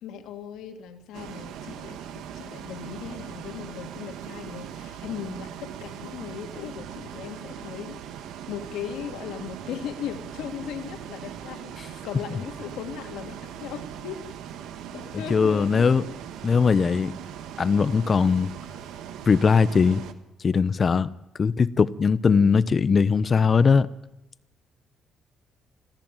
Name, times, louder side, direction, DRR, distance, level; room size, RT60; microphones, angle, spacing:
voice 1, 0.0-8.0 8.5-14.2 14.9-16.2, left 8 dB, 90° left, 2.5 m, -38 dB
Bus, 1.1-20.1, right 9 dB, 90° right, 1.6 m, -40 dB
voice 2, 15.1-16.0 16.4-17.1 17.6-18.5 19.3-20.0 20.4-21.1 21.4-23.9, left 5 dB, 40° left, 1.0 m, -20 dB
26.0 x 14.5 x 9.2 m
cardioid pair, 90°, 0 cm